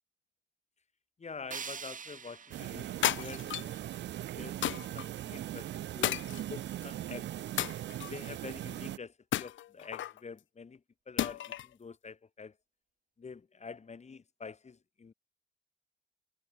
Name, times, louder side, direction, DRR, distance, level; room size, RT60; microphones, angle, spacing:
voice 1, 1.2-3.7 4.3-7.3 8.1-12.6 13.2-15.1, left 5 dB, 35° left, 4.4 m, -47 dB
sound 1, 1.5-4.5, right 6 dB, 40° right, 2.5 m, -46 dB
sound 2, 2.5-9.0, right 13 dB, 65° right, 0.6 m, -40 dB
sound 3, 3.0-3.8 4.6-5.1 6.0-6.9 7.6-8.3 9.3-10.2 11.2-11.7, left 12 dB, 70° left, 1.3 m, -33 dB
cardioid pair, 90°, 20 cm